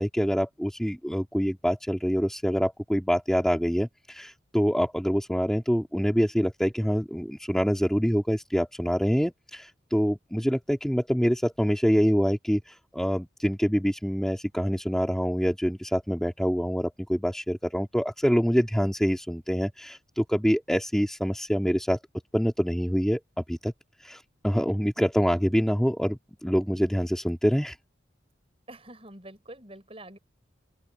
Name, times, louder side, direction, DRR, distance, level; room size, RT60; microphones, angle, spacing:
voice 1, 0.0-22.0 22.3-23.2 23.5-23.7 24.0-27.8, equal, 5° left, 2.4 m, -26 dB
voice 2, 28.7-30.2, right 1 dB, 30° right, 6.8 m, -46 dB
open air
head